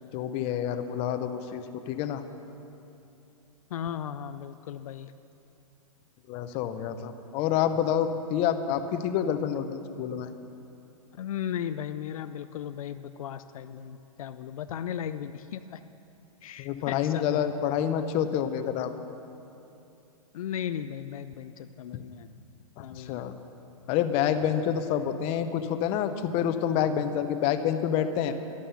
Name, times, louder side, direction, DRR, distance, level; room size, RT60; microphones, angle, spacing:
voice 1, 0.1-2.2 6.3-10.3 16.6-18.9 22.8-23.3 23.9-28.3, left 9 dB, 30° left, 9 dB, 0.8 m, -28 dB
voice 2, 3.7-5.1 11.2-15.8 16.4-17.4 20.3-22.3 22.8-23.5, left 9 dB, 70° left, 11 dB, 0.5 m, -36 dB
12.5 x 11.0 x 7.0 m, 2.7 s
hypercardioid pair, 140°, 19 cm